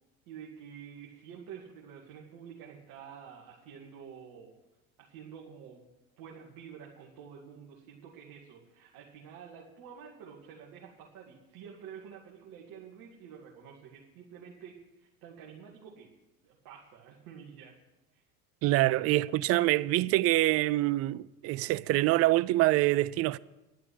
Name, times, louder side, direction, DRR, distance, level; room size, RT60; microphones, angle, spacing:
voice 1, 0.3-4.5 5.0-5.9 6.2-16.1 16.4-17.8 18.1-18.2, right 7 dB, 50° right, 2.3 m, -49 dB
voice 2, 18.6-23.4, right 17 dB, 35° right, 0.4 m, -25 dB
11.5 x 7.6 x 9.8 m
hypercardioid pair, 85°, 44 cm